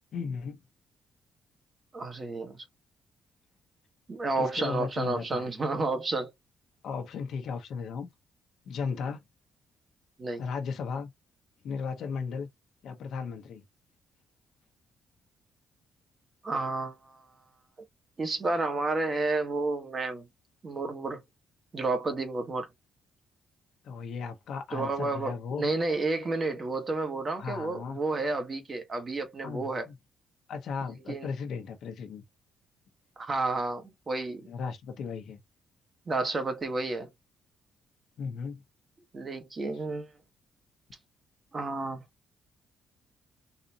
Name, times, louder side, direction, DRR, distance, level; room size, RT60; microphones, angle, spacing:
voice 1, 0.1-0.6 4.4-5.5 6.8-8.1 8.7-9.2 10.4-11.1 11.6-12.5 12.8-13.6 23.8-25.6 27.4-28.0 29.4-29.9 30.5-32.2 34.4-35.4 38.2-38.6, left 5 dB, 70° left, 1.1 m, -36 dB
voice 2, 1.9-2.6 4.1-6.3 10.2-10.4 16.4-17.2 18.2-20.2 20.6-21.2 21.7-22.7 24.7-29.9 31.1-31.3 33.2-34.5 36.1-37.1 39.1-40.1 41.5-42.0, right 3 dB, 35° right, 1.4 m, -31 dB
4.1 x 2.6 x 2.7 m
cardioid pair, 90°, 0 cm